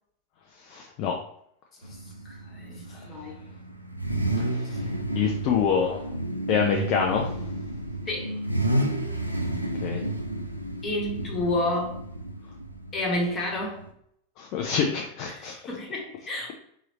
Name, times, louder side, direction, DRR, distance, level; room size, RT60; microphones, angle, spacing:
voice 1, 0.6-1.2 2.9-3.1 4.5-6.0 6.5-7.4 9.8-10.0 14.4-15.5, left 6 dB, 40° left, 1 dB, 0.5 m, -27 dB
Car / Idling / Accelerating revving vroom, 1.8-13.9, right 1 dB, 90° right, 0.5 m, -31 dB
voice 2, 1.9-3.4 4.7-4.8 8.1-8.4 10.8-12.0 12.9-13.9 15.3-16.5, left 1 dB, 25° left, -1 dB, 1.2 m, -30 dB
3.6 x 3.0 x 3.0 m, 0.69 s
figure-of-eight pair, 90°, 0 cm